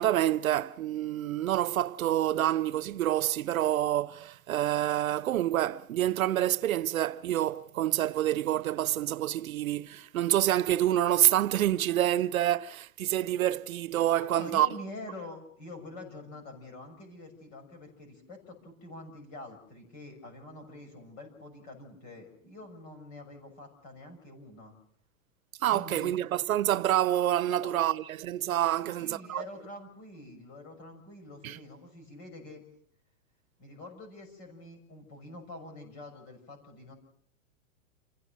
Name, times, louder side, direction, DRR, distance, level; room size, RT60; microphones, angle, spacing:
voice 1, 0.0-14.7 25.6-29.4 31.4-31.6, right 13 dB, 85° right, 1.0 m, -27 dB
voice 2, 14.0-24.8 25.7-26.1 27.5-27.8 28.7-32.6 33.6-36.9, left 2 dB, 25° left, 6.4 m, -46 dB
29.0 x 16.0 x 6.5 m
supercardioid pair, 180°, 40 cm